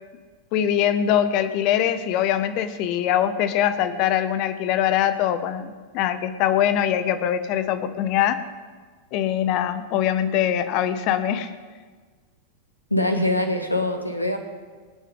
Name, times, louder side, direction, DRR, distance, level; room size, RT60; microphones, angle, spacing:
voice 1, 0.5-8.5 9.1-11.5, left 10 dB, 40° left, 12 dB, 1.1 m, -23 dB
voice 2, 12.9-14.4, left 1 dB, 85° left, 6 dB, 1.7 m, -23 dB
25.5 x 9.4 x 3.8 m, 1.5 s
figure-of-eight pair, 90°, 0 cm